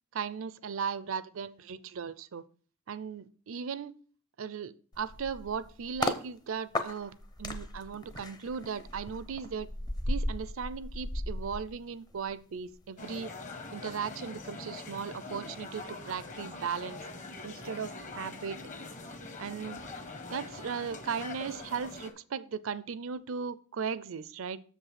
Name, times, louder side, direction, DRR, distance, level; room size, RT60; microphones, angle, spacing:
voice 1, 0.1-2.4 2.9-3.9 4.4-7.1 7.4-9.7 10.1-13.3 13.7-17.0 17.4-18.6 19.4-19.8 20.3-24.6, right 6 dB, 70° right, 17 dB, 0.5 m, -37 dB
sound 1, 4.9-6.2 6.7-12.3 12.6-12.9, left 1 dB, 20° left, 0.7 m, -36 dB
sound 2, 13.0-22.1, left 3 dB, 40° left, 1.1 m, -43 dB
6.8 x 5.4 x 5.8 m, 0.42 s
head